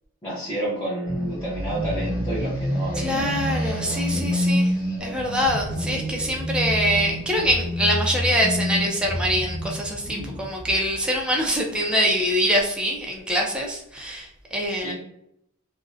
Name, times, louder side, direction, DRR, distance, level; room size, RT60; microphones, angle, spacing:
voice 1, 0.2-3.2 10.1-10.5 14.7-14.9, right 1 dB, 20° left, -8 dB, 0.7 m, -30 dB
sound 1, 1.0-11.8, equal, 40° left, 1.1 m, -28 dB
voice 2, 3.0-4.7 5.0-14.9, equal, 5° right, -1 dB, 0.4 m, -24 dB
2.4 x 2.0 x 2.5 m, 0.75 s
head